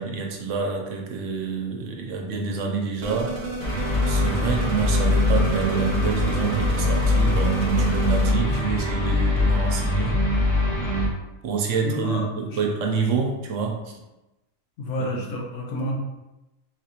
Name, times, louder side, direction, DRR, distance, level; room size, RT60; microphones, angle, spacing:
voice 1, 0.0-3.4 4.1-10.2 11.4-14.0 15.0-15.1, right 5 dB, 75° right, 1 dB, 0.9 m, -27 dB
sound 1, 3.0-8.3, right 3 dB, 50° right, 0.5 m, -32 dB
sound 2, 3.6-11.1, left 2 dB, 35° left, 0.5 m, -22 dB
voice 2, 11.8-12.6 14.8-16.0, equal, 75° left, -1 dB, 1.1 m, -30 dB
3.9 x 2.5 x 2.8 m, 0.99 s
omnidirectional pair, 1.3 m